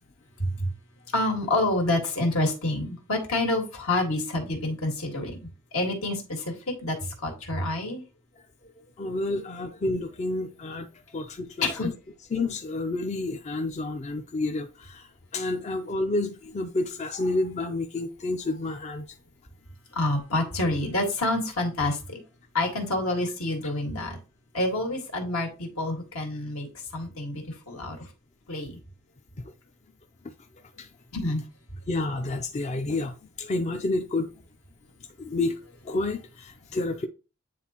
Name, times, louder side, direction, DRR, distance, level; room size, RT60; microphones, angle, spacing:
voice 1, 1.1-5.4 5.7-7.0 7.2-8.0 11.6-11.9 19.9-22.2 22.5-24.2 24.5-26.7 26.9-28.0 28.5-28.8 31.1-31.4, left 2 dB, 75° left, 1.9 m, -28 dB
voice 2, 9.0-10.9 11.1-11.9 12.3-19.1 30.8-30.9 31.9-34.3 35.2-35.6 35.8-37.1, left 2 dB, 35° left, 0.4 m, -29 dB
9.2 x 3.8 x 2.9 m
head